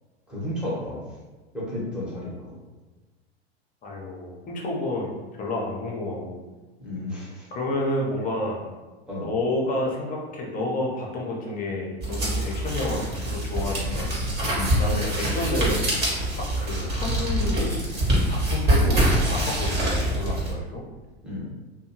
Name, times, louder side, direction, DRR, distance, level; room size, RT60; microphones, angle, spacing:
voice 1, 0.3-1.0 1.5-2.5 6.8-7.5 9.1-9.3 14.5-14.8 21.2-21.5, left 1 dB, 5° right, -8 dB, 1.0 m, -32 dB
voice 2, 3.8-5.1 5.4-6.4 7.5-8.7 9.2-14.1 14.8-15.9 16.4-17.8 18.3-20.8, left 1 dB, 25° left, -2 dB, 0.7 m, -30 dB
sound 1, 12.0-20.5, right 1 dB, 30° right, 1.2 m, -24 dB
2.6 x 2.2 x 2.8 m, 1.2 s
hypercardioid pair, 95°, 32 cm